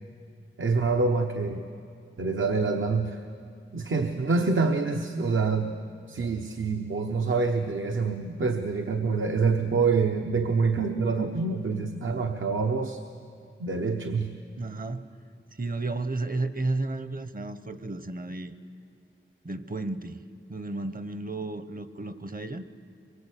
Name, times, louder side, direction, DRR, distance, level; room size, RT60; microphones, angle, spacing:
voice 1, 0.6-1.6 2.2-3.2 3.7-5.7 6.1-13.0 13.6-14.3, right 4 dB, 70° right, 4 dB, 1.2 m, -26 dB
voice 2, 14.6-15.1 15.6-18.5 19.4-20.2 20.5-22.6, right 2 dB, 40° right, 11 dB, 1.1 m, -33 dB
23.5 x 22.5 x 8.3 m, 2.4 s
wide cardioid pair, 80°, 21 cm